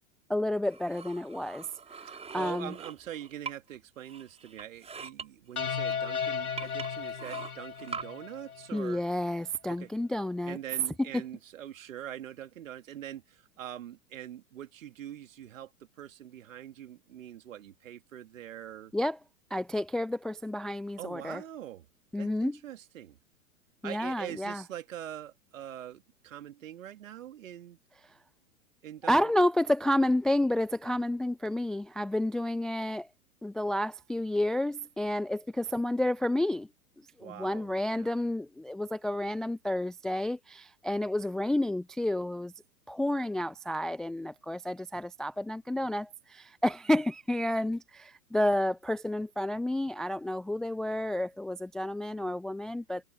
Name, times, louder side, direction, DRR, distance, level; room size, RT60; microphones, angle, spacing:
voice 1, 0.3-1.7 2.0-2.1 2.3-2.7 8.7-10.6 11.1-11.2 18.9-19.2 19.5-21.4 22.1-22.6 23.8-24.6 29.0-33.1 33.4-36.7 37.2-42.5 42.9-53.0, left 1 dB, ahead, 0.4 m, -30 dB
sound 1, 0.6-3.8 4.1-5.3 5.9-6.0 6.6-8.0, right 5 dB, 15° right, 5.9 m, -43 dB
voice 2, 2.0-9.0 9.7-9.9 10.5-15.7 16.0-18.9 21.0-21.9 22.2-23.2 23.8-27.8 28.8-29.2 37.2-38.1, right 11 dB, 60° right, 3.3 m, -43 dB
sound 2, 5.6-8.9, left 7 dB, 75° left, 4.4 m, -35 dB
figure-of-eight pair, 105°, 44 cm